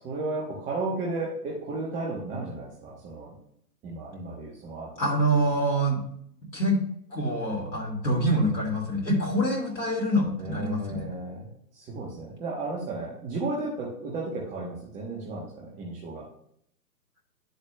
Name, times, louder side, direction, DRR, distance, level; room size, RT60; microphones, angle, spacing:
voice 1, 0.0-3.3 3.8-4.9 5.5-5.8 10.4-11.5 11.7-16.2, right 2 dB, 15° right, -4 dB, 1.0 m, -34 dB
voice 2, 5.0-6.0 6.5-6.8 7.1-11.1, right 1 dB, 85° left, -2 dB, 2.5 m, -25 dB
11.0 x 6.6 x 2.2 m, 0.68 s
figure-of-eight pair, 130°, 49 cm